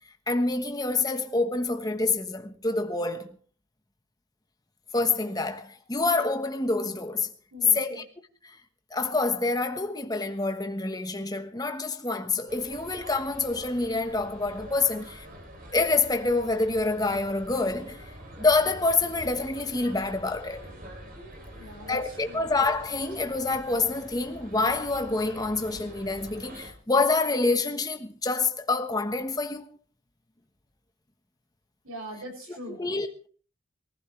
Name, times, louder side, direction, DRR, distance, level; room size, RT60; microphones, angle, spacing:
voice 1, 0.3-3.4 4.9-7.3 7.7-8.0 8.4-8.6 8.9-15.3 15.7-20.7 21.9-29.7 32.7-33.3, left 3 dB, 20° left, 1.2 m, -27 dB
voice 2, 7.5-8.0 21.5-22.5 31.8-32.8, equal, 85° right, 7.3 m, -42 dB
sound 1, 12.5-26.7, right 1 dB, 40° right, 3.2 m, -45 dB
23.0 x 15.0 x 3.3 m
head